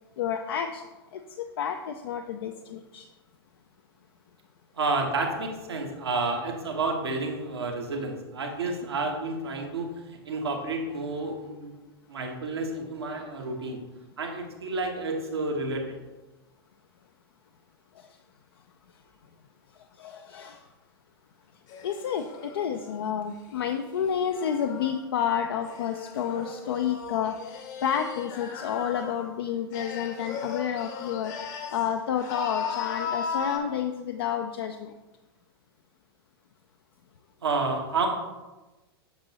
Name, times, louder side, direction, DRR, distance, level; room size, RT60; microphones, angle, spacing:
voice 1, 0.2-0.8 1.4-3.0 20.0-20.6 21.8-31.3 31.7-34.9, left 8 dB, 70° left, 5 dB, 0.4 m, -30 dB
voice 2, 4.7-11.7 12.1-13.8 14.2-15.8 37.4-38.1, right 3 dB, 80° right, 2 dB, 1.2 m, -30 dB
sound 1, 21.7-25.0 25.6-29.3 29.7-31.9 32.2-33.6, left 6 dB, 50° left, 1.0 m, -37 dB
7.6 x 6.0 x 2.8 m, 1.1 s
hypercardioid pair, 100°, 13 cm